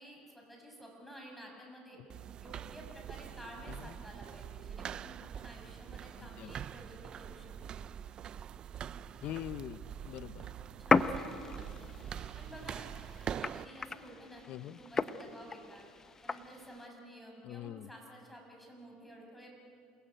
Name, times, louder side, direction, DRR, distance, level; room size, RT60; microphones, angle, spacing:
voice 1, 0.0-2.0 2.4-7.5 10.6-11.8 12.4-13.0 13.3-15.9 16.2-19.5, equal, 5° left, 0 dB, 6.9 m, -52 dB
sound 1, 2.1-13.6, right 9 dB, 40° right, 0.5 m, -44 dB
voice 2, 6.2-6.5 9.2-10.5 14.5-14.8 17.4-17.9, left 12 dB, 55° left, 15 dB, 0.8 m, -43 dB
sound 2, 10.9-16.9, left 4 dB, 20° left, 0.9 m, -35 dB
28.5 x 20.5 x 9.2 m, 2.4 s
cardioid pair, 125°, 2 cm